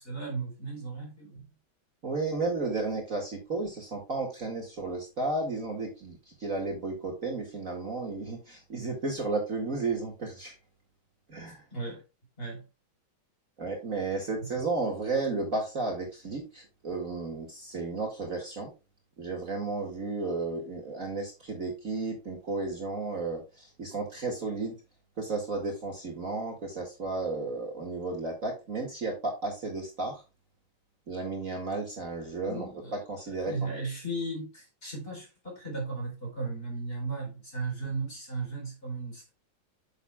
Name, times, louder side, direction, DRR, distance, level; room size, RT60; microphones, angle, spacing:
voice 1, 0.0-1.5 11.7-12.0 12.4-12.6 32.4-33.0 33.4-39.3, right 3 dB, 25° left, 4.6 m, -36 dB
voice 2, 2.0-10.6 11.3-11.6 13.6-18.7 19.2-24.8 25.2-30.2 31.1-33.7, right 3 dB, 40° right, 2.3 m, -33 dB
9.7 x 7.2 x 2.3 m
omnidirectional pair, 2.3 m